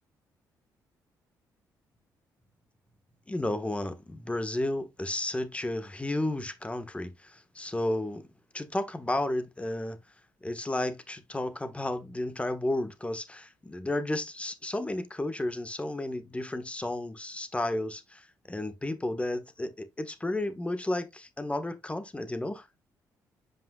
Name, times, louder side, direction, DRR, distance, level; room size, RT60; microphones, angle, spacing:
voice 1, 3.3-8.3 8.5-10.0 10.4-18.2 18.5-22.6, left 1 dB, 15° left, 1.4 m, -32 dB
7.8 x 5.3 x 2.3 m
supercardioid pair, 65°, 8 cm